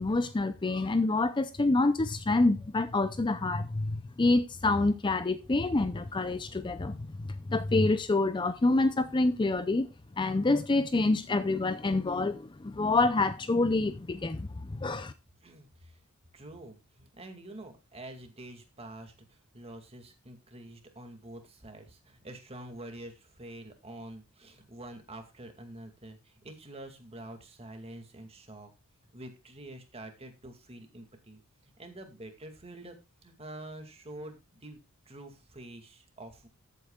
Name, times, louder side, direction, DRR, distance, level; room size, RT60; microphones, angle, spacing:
voice 1, 0.0-9.9 10.2-15.1, left 2 dB, 20° left, 0.5 m, -27 dB
voice 2, 15.4-16.0 16.3-28.7 29.1-33.0 33.2-34.8 35.1-36.5, right 1 dB, 30° right, 2.2 m, -47 dB
14.5 x 8.5 x 2.3 m
head